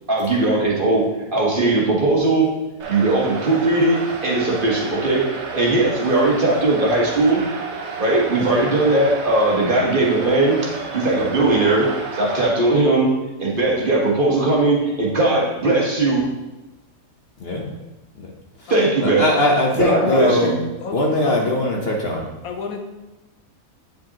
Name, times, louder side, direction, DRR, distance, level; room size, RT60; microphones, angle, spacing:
voice 1, 0.1-2.5 2.9-7.4 8.0-10.6 10.9-13.1 13.4-16.2 18.7-19.3 19.8-20.6, right 2 dB, 35° right, -4 dB, 1.3 m, -19 dB
sound 1, 2.8-12.5, right 4 dB, 55° right, 1.0 m, -32 dB
voice 2, 17.4-17.7 18.2-18.3 18.6-18.7 19.0-20.5 20.9-22.3, left 1 dB, 50° left, -1 dB, 0.9 m, -20 dB
voice 3, 18.7-19.2 19.7-20.4 20.8-21.5 22.4-22.8, left 5 dB, 75° left, 4 dB, 1.2 m, -32 dB
9.0 x 5.0 x 2.9 m, 1.0 s
omnidirectional pair, 1.6 m